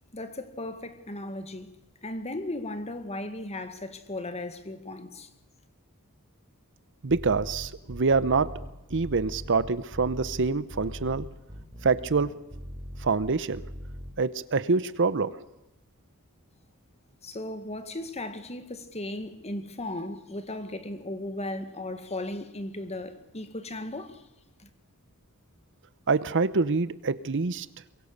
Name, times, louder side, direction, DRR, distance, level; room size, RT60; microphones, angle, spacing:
voice 1, 0.1-1.7 2.0-5.3 17.2-24.2 24.6-24.7, left 1 dB, 30° left, 1.9 m, -36 dB
voice 2, 7.0-8.5 8.9-11.2 11.8-12.4 13.0-13.6 14.2-15.3 26.1-27.7, right 4 dB, 60° right, 0.8 m, -25 dB
sound 1, 7.1-14.1, equal, 20° right, 4.1 m, -40 dB
24.0 x 22.0 x 6.7 m
head